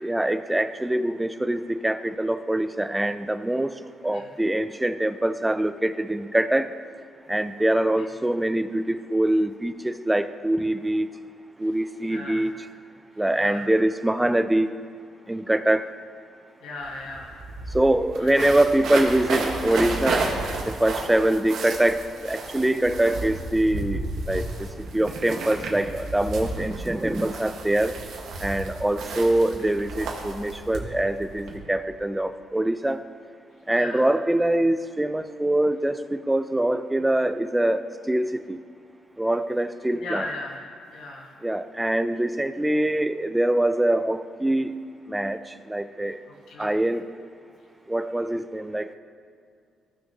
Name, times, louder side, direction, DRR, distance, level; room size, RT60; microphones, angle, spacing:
voice 1, 0.0-6.7 7.3-11.1 11.6-12.5 13.2-14.7 15.3-15.9 17.7-20.3 20.6-24.7 24.9-27.9 28.4-33.0 33.7-38.6 39.2-40.3 41.4-44.8 45.1-46.2 46.6-47.0 47.9-49.0, right 1 dB, 10° right, 11 dB, 0.4 m, -24 dB
voice 2, 12.1-12.5 13.3-13.6 16.6-17.4 18.2-18.4 33.7-34.0 40.0-40.6 40.9-41.3 46.5-46.7, left 2 dB, 80° left, -2 dB, 1.4 m, -36 dB
sound 1, 16.8-16.9 17.1-31.6, right 3 dB, 75° right, 1.4 m, -32 dB
15.0 x 6.3 x 2.9 m, 2.3 s
cardioid pair, 90°, 0 cm